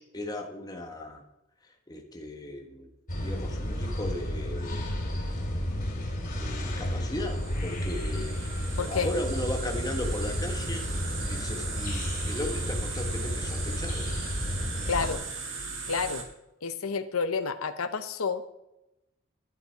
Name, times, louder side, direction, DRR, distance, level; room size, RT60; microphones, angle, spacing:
voice 1, 0.1-1.2 1.9-2.9 3.2-4.9 6.4-8.3 8.8-10.9 11.3-14.1, left 1 dB, 20° left, 3 dB, 1.4 m, -36 dB
sound 1, 3.1-15.2, equal, 40° left, 3.0 m, -32 dB
sound 2, 7.1-16.2, right 4 dB, 65° right, 2.0 m, -38 dB
voice 2, 8.8-9.1 14.9-15.2 15.9-16.2 16.6-18.5, left 5 dB, 80° left, 10 dB, 0.7 m, -30 dB
11.0 x 11.0 x 4.6 m, 0.92 s
head